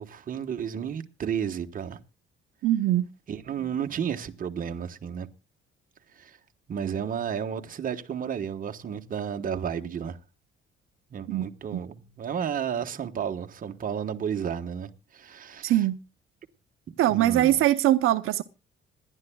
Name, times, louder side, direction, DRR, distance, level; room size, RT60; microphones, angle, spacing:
voice 1, 0.0-2.0 3.3-5.3 6.2-6.4 6.7-10.2 11.1-15.9 17.1-17.6, right 8 dB, 40° right, 1.1 m, -32 dB
voice 2, 2.6-3.1 11.3-11.5 11.7-11.8 15.6-16.0 17.0-18.4, right 13 dB, 85° right, 0.7 m, -22 dB
26.0 x 11.0 x 2.2 m
cardioid pair, 140°, 21 cm